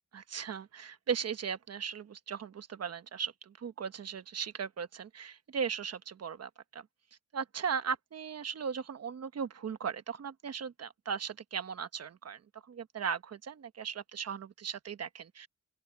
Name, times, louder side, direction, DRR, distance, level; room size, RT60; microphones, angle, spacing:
voice 1, 0.1-6.9 7.3-15.5, right 6 dB, 50° right, 1.1 m, -38 dB
open air
wide cardioid pair, 150°, 31 cm